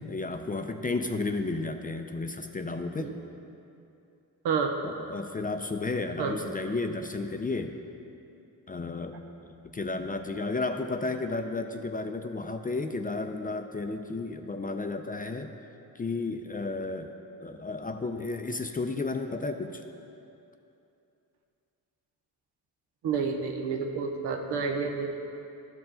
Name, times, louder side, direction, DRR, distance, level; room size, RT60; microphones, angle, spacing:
voice 1, 0.0-3.1 4.8-7.8 8.7-15.5 15.9-17.1 17.4-19.8, left 3 dB, 25° left, 6 dB, 0.4 m, -33 dB
voice 2, 4.4-4.9 6.2-6.4 23.0-25.1, right 5 dB, 90° right, 4 dB, 0.8 m, -29 dB
12.5 x 4.8 x 3.7 m, 2.7 s
cardioid pair, 75°, 39 cm